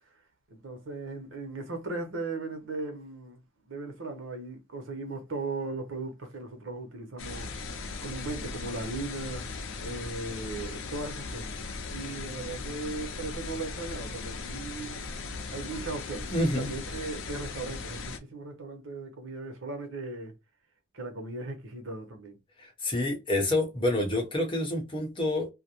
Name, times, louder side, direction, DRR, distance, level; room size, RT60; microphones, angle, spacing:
voice 1, 0.5-3.4 3.7-7.5 8.0-9.4 9.8-11.5 11.9-15.0 15.5-20.3 20.9-22.4, right 3 dB, 80° right, 0.9 m, -37 dB
sound 1, 7.2-18.2, left 4 dB, 80° left, 0.5 m, -38 dB
voice 2, 16.3-16.7 22.6-25.5, left 1 dB, 25° left, 0.8 m, -28 dB
2.4 x 2.0 x 2.8 m
head